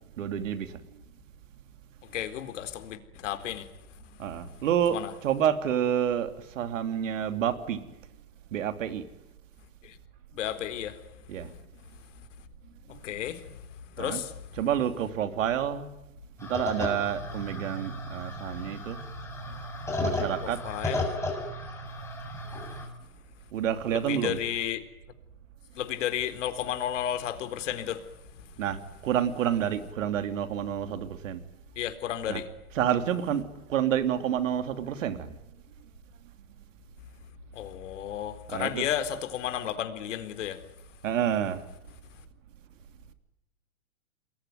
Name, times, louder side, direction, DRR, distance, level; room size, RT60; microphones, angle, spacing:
voice 1, 0.2-0.8 4.2-5.0 5.2-7.8 8.5-9.0 11.3-11.5 14.0-14.2 14.6-15.9 16.4-19.0 20.0-20.6 23.5-24.4 28.6-31.4 32.3-32.4 32.8-33.4 33.7-35.3 38.5-38.9 41.0-41.6, right 9 dB, 60° right, 3.1 m, -28 dB
voice 2, 2.1-3.7 4.9-5.1 9.8-9.9 10.4-11.0 12.9-13.4 13.9-14.3 20.4-21.1 23.9-24.8 25.7-28.0 31.8-32.5 37.5-40.6, left 10 dB, 60° left, 4.0 m, -32 dB
sound 1, 16.4-22.9, left 2 dB, 5° left, 7.3 m, -34 dB
28.5 x 21.5 x 9.5 m
hypercardioid pair, 125°, 42 cm